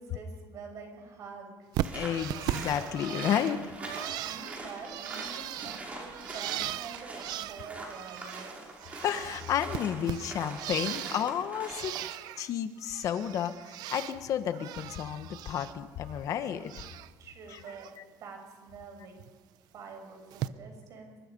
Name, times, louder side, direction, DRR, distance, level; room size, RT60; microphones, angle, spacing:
voice 1, 0.0-1.7 4.0-8.5 17.2-17.9 18.2-19.2 19.7-21.2, right 5 dB, 50° right, 4 dB, 6.3 m, -46 dB
Bird, 1.7-8.5 8.8-11.3 11.6-12.5 12.8-14.2 14.5-15.7 16.0-17.1 17.5-17.9 19.2-19.3 20.3-20.5, right 13 dB, 65° right, 0.8 m, -38 dB
sound 1, 1.8-12.1, right 2 dB, 20° right, 5.9 m, -43 dB
voice 2, 1.9-3.6 9.0-12.0 12.4-16.7 17.5-17.6, left 9 dB, 50° left, 10 dB, 1.3 m, -31 dB
27.5 x 24.0 x 5.4 m, 1.4 s
cardioid pair, 155°, 7 cm